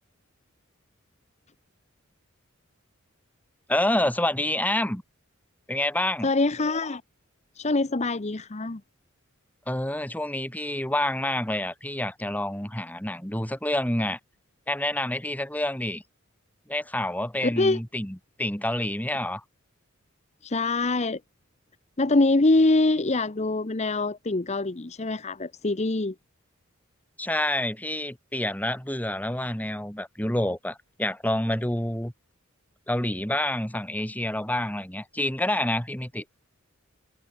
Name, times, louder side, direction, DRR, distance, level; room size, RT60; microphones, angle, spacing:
voice 1, 3.7-5.0 5.7-6.3 9.7-14.2 14.7-16.0 16.7-19.4 27.2-32.1 32.9-36.2, left 1 dB, 10° left, 2.6 m, -28 dB
voice 2, 6.2-7.0 7.6-8.8 17.6-17.8 20.4-21.2 22.0-26.1, left 2 dB, 30° left, 0.8 m, -24 dB
head